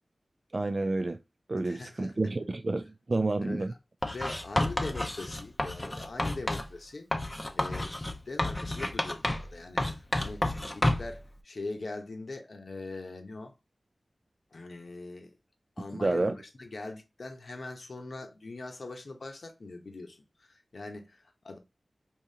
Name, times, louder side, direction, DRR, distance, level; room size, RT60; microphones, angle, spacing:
voice 1, 0.5-1.2 1.5-3.7 16.0-16.4, right 2 dB, 50° right, 0.3 m, -29 dB
voice 2, 1.6-2.1 3.4-3.7 4.0-7.1 7.5-13.5 14.5-15.4 15.8-21.6, left 2 dB, 65° left, 0.9 m, -42 dB
Writing, 4.0-6.7 7.1-9.5 9.8-11.2, left 1 dB, 25° left, 0.6 m, -30 dB
3.5 x 2.9 x 2.7 m
wide cardioid pair, 60°, 0 cm